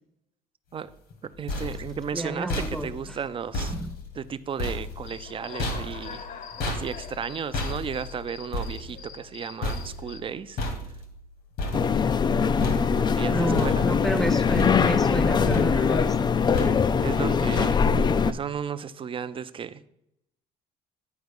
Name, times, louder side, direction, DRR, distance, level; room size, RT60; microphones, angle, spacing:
sound 1, 1.1-12.3 12.6-13.2 13.5-14.2 14.6-15.2 15.5-16.0 16.5-17.1 17.6-18.1, left 2 dB, 80° left, 2.0 m, -34 dB
voice 1, 1.2-3.7 4.2-6.2 6.6-10.6 13.0-13.9 17.0-17.8 18.3-19.8, right 7 dB, 30° right, 0.5 m, -34 dB
voice 2, 2.1-3.2 3.7-3.9 13.3-16.3, right 1 dB, ahead, 0.7 m, -31 dB
Human voice / Cricket, 5.0-10.2, left 6 dB, 55° left, 1.0 m, -44 dB
sound 2, 11.7-18.3, left 6 dB, 25° left, 0.3 m, -22 dB
9.4 x 4.7 x 5.2 m
cardioid pair, 110°, 17 cm